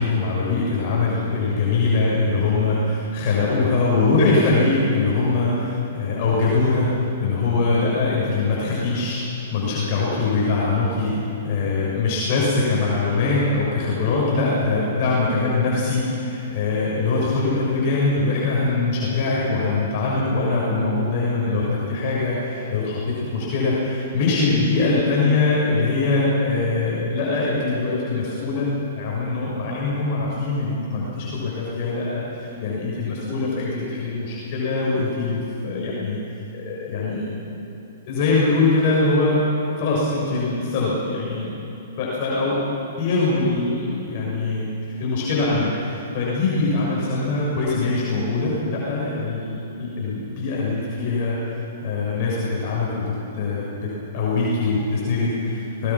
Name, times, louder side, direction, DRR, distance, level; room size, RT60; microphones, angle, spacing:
voice 1, 0.0-9.2 9.5-11.1 11.4-36.2 36.5-37.3 38.1-39.4 39.8-41.5 42.0-42.6 43.0-44.7 45.0-53.8 54.1-55.9, left 3 dB, 45° left, -6 dB, 6.7 m, -22 dB
24.5 x 20.0 x 6.1 m, 3.0 s
hypercardioid pair, 125°, 0 cm